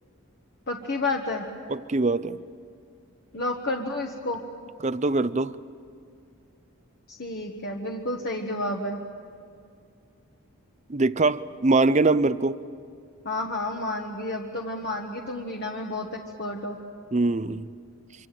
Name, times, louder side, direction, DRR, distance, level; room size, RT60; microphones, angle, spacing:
voice 1, 0.7-1.4 3.3-4.4 7.1-9.0 13.2-16.8, left 2 dB, 50° left, 0 dB, 1.5 m, -30 dB
voice 2, 1.7-2.4 4.8-5.5 10.9-12.6 17.1-17.7, right 3 dB, 30° right, 15 dB, 0.6 m, -23 dB
26.0 x 25.5 x 7.7 m, 2.4 s
head